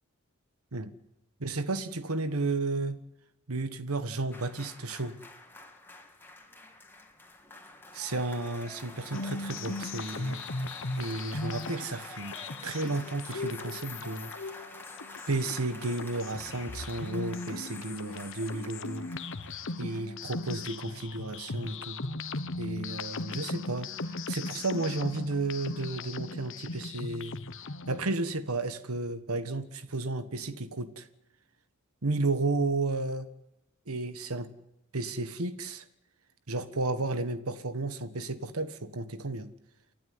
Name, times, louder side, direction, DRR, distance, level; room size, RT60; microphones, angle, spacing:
voice 1, 1.4-3.0 3.5-5.1 7.9-10.4 11.0-14.3 15.3-19.1 19.8-22.0 22.6-27.4 27.9-31.1 32.0-33.3 33.9-34.5 34.9-35.8 36.5-39.5, right 2 dB, 85° right, 11 dB, 1.5 m, -33 dB
sound 1, 4.3-20.6 20.9-21.0, left 2 dB, 10° left, 2.8 m, -48 dB
sound 2, 9.1-28.0, left 3 dB, 60° left, 1.2 m, -38 dB
30.0 x 12.5 x 9.6 m, 0.87 s
head